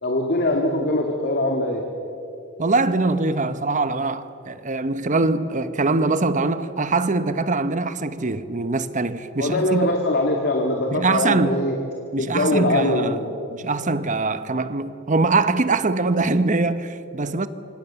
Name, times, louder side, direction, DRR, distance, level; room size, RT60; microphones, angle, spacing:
voice 1, 0.0-1.8 9.4-11.7 12.2-13.2, left 1 dB, 50° left, 2.3 m, -22 dB
voice 2, 2.6-9.9 10.9-11.5 12.1-13.2 13.5-17.5, right 3 dB, 35° right, 1.0 m, -23 dB
27.0 x 25.0 x 6.9 m
head